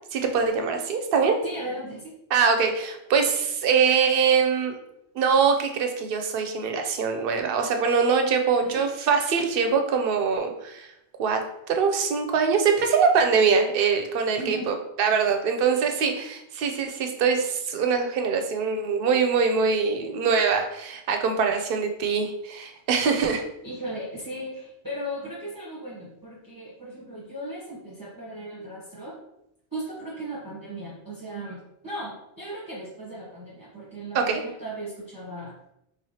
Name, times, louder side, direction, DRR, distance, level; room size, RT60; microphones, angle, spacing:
voice 1, 0.1-1.4 2.3-4.8 5.2-10.9 11.2-23.4 34.1-34.4, right 5 dB, 60° right, 5 dB, 0.7 m, -23 dB
voice 2, 1.4-2.1 8.6-8.8 14.4-14.7 23.6-29.2 29.7-35.6, right 1 dB, 20° right, -7 dB, 0.9 m, -37 dB
4.2 x 3.1 x 2.7 m, 0.81 s
omnidirectional pair, 1.1 m